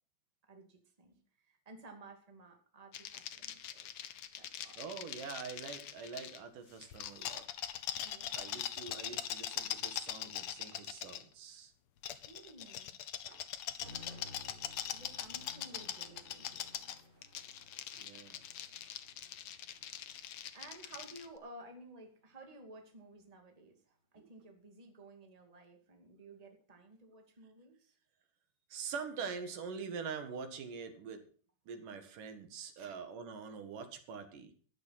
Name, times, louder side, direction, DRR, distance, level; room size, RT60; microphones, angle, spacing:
voice 1, 0.5-3.9 4.4-4.8 8.0-8.6 12.3-12.9 13.8-14.3 14.9-16.7 20.5-28.0 32.8-33.0, right 2 dB, 15° right, 4 dB, 2.1 m, -55 dB
sound 1, 2.9-6.4 6.8-11.2 12.0-21.3, left 10 dB, 70° left, 1.4 m, -42 dB
voice 2, 4.8-7.4 8.3-11.7 13.3-13.4 17.9-18.4 24.2-24.3 28.7-31.2 31.7-34.5, right 5 dB, 80° right, 8 dB, 3.3 m, -44 dB
sound 2, 13.8-21.8, left 1 dB, 45° right, 5.2 m, -58 dB
13.5 x 10.5 x 5.8 m, 0.43 s
omnidirectional pair, 3.7 m